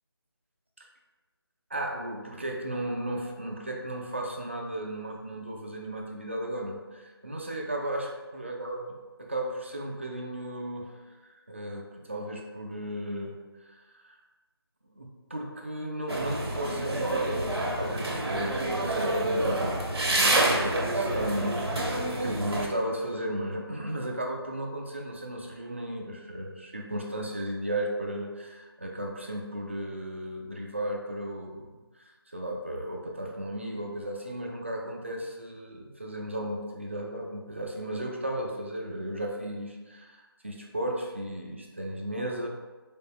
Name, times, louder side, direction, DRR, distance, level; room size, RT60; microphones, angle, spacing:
voice 1, 1.7-8.8 9.2-10.9 11.2-14.2 15.0-42.5, right 1 dB, 30° right, 1 dB, 0.4 m, -35 dB
sound 1, 16.1-22.7, right 1 dB, 75° right, 0.8 m, -28 dB
3.8 x 3.5 x 2.4 m, 1.3 s
figure-of-eight pair, 165°, 13 cm